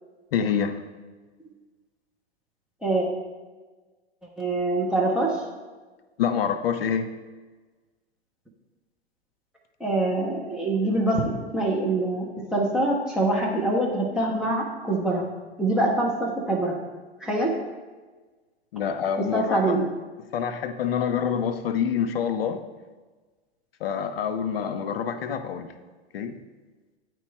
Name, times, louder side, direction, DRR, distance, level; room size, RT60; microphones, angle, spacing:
voice 1, 0.3-0.8 6.2-7.1 18.7-19.8 20.3-22.6 23.8-25.7 26.1-26.3, left 7 dB, 65° left, 9 dB, 0.6 m, -26 dB
voice 2, 4.4-5.4 9.8-15.3 15.6-16.8 17.2-17.5 19.2-19.8, right 2 dB, ahead, -3 dB, 0.7 m, -24 dB
9.0 x 3.0 x 3.4 m, 1.3 s
figure-of-eight pair, 100°, 32 cm